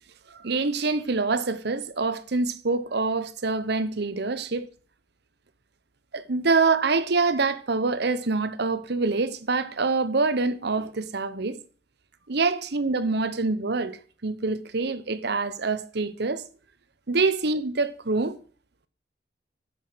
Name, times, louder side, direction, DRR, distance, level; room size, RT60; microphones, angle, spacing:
voice 1, 0.3-4.7 6.1-11.6 12.3-16.4 17.1-18.4, right 3 dB, 65° right, 1.0 m, -25 dB
9.6 x 7.2 x 7.7 m
head